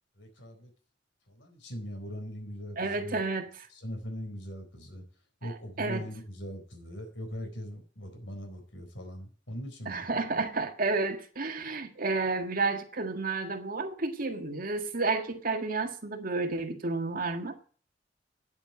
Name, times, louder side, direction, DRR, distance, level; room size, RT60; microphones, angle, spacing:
voice 1, 0.2-0.7 1.3-3.2 3.7-5.0 5.4-10.0, equal, 75° left, 4.2 m, -40 dB
voice 2, 2.8-3.5 5.4-6.1 9.9-17.6, right 3 dB, 50° right, 1.8 m, -31 dB
10.0 x 7.8 x 8.2 m
head